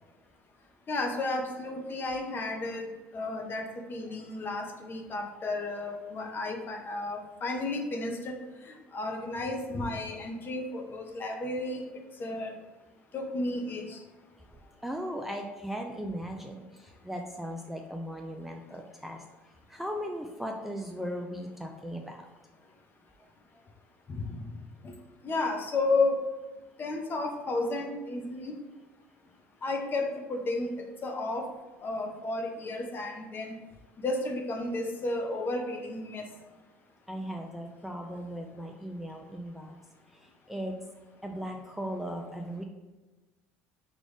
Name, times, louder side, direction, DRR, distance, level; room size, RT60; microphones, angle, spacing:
voice 1, 0.9-8.3 8.7-11.8 12.2-12.5 13.1-14.0 24.1-24.4 24.8-24.9 25.2-26.2 26.8-28.6 29.6-30.7 31.0-31.5 31.8-33.5 34.0-36.2, left 2 dB, 35° left, 3 dB, 0.8 m, -32 dB
voice 2, 14.6-19.2 19.7-22.2 37.1-39.8 40.1-40.2 40.5-40.8 41.2-42.6, equal, 5° right, 2 dB, 0.4 m, -37 dB
4.9 x 2.5 x 3.5 m, 1.2 s
hypercardioid pair, 80°, 6 cm